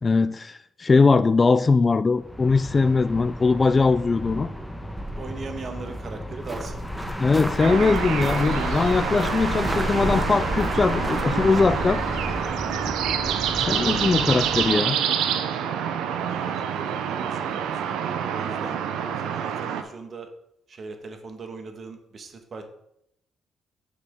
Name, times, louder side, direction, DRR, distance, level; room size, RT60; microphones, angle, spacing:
voice 1, 0.0-4.5 7.2-12.0 13.6-15.0, left 4 dB, 30° left, 14 dB, 0.3 m, -21 dB
sound 1, 2.2-14.9, equal, 5° left, 1.1 m, -31 dB
voice 2, 5.1-6.8 16.2-20.3 20.7-22.6, right 4 dB, 45° right, 5 dB, 1.4 m, -39 dB
sound 2, 6.4-11.6, right 1 dB, 15° right, 1.1 m, -36 dB
sound 3, 7.6-19.8, right 8 dB, 90° right, 0.6 m, -27 dB
8.4 x 6.1 x 3.6 m, 0.76 s
cardioid pair, 90°, 0 cm